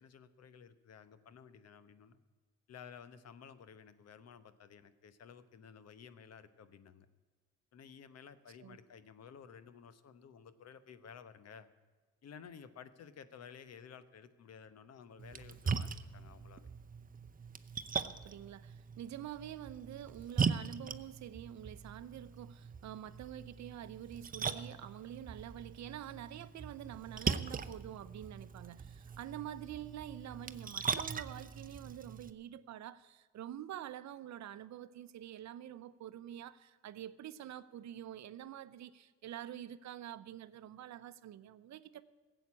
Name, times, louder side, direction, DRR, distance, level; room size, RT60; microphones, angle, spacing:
voice 1, 0.0-2.2 2.7-7.1 7.7-11.7 12.2-16.7, left 7 dB, 55° left, 1.0 m, -54 dB
Splash splatter, 15.2-32.3, right 5 dB, 30° right, 0.7 m, -40 dB
voice 2, 18.0-42.0, right 11 dB, 65° right, 0.7 m, -47 dB
15.5 x 8.1 x 8.4 m
cardioid pair, 90°, 30 cm